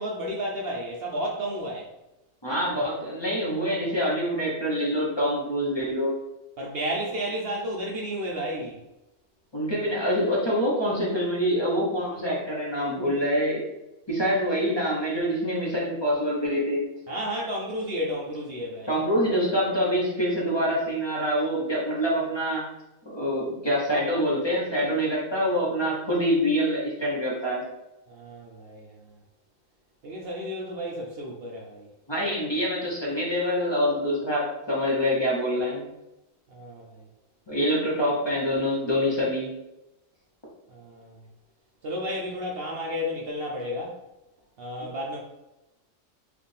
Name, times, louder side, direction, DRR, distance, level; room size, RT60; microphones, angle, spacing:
voice 1, 0.0-1.9 6.6-8.8 17.1-19.0 28.1-29.2 30.0-31.9 36.5-37.0 40.7-41.2 41.8-43.9 44.6-45.2, equal, 60° right, -2 dB, 0.8 m, -32 dB
voice 2, 2.4-6.2 9.5-13.6 14.1-16.9 18.9-22.6 23.0-27.6 32.1-35.9 37.5-39.6, equal, 25° left, -6 dB, 0.9 m, -25 dB
4.9 x 2.4 x 3.3 m, 0.94 s
omnidirectional pair, 1.3 m